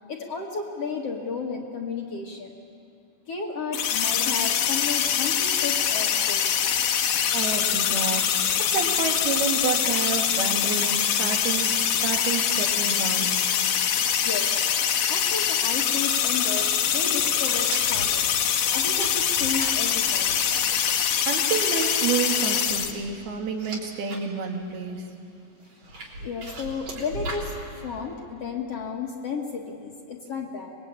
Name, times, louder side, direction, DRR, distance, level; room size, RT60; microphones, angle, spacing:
voice 1, 0.1-2.5 3.3-6.8 14.2-14.5 15.1-18.3 18.7-20.4 26.2-30.7, left 5 dB, 50° left, 1 dB, 2.1 m, -33 dB
sound 1, 3.7-22.9, left 9 dB, 70° left, 2.7 m, -24 dB
voice 2, 7.3-13.4 21.3-25.0, right 5 dB, 80° right, 3 dB, 3.9 m, -29 dB
sound 2, 17.5-24.2 24.6-25.1 25.7-27.5, right 1 dB, 50° right, 4.6 m, -39 dB
25.0 x 21.0 x 8.7 m, 2.4 s
omnidirectional pair, 4.4 m